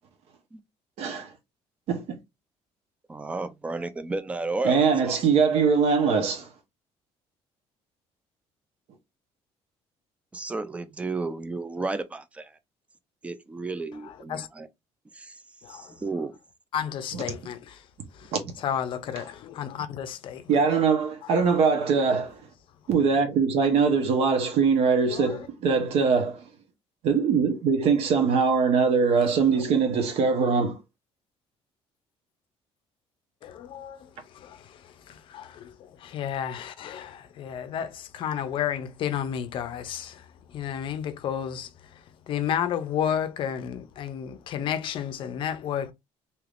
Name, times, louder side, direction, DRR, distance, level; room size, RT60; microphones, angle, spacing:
voice 1, 1.0-1.3 1.9-2.2 4.6-6.5 18.3-18.4 20.5-22.4 22.9-26.4 27.0-30.8, right 5 dB, 65° right, 0.9 m, -22 dB
voice 2, 3.1-5.2 10.3-12.5 13.2-14.7 15.1-15.4 15.7-16.3, right 3 dB, 10° right, 0.3 m, -33 dB
voice 3, 14.0-14.5 15.6-15.9 16.7-17.9 18.1-20.6 21.2-21.7 21.9-22.0 25.1-25.5 29.5-29.6 33.4-45.9, left 9 dB, 50° left, 0.5 m, -32 dB
3.3 x 2.8 x 2.4 m
cardioid pair, 160°, 11 cm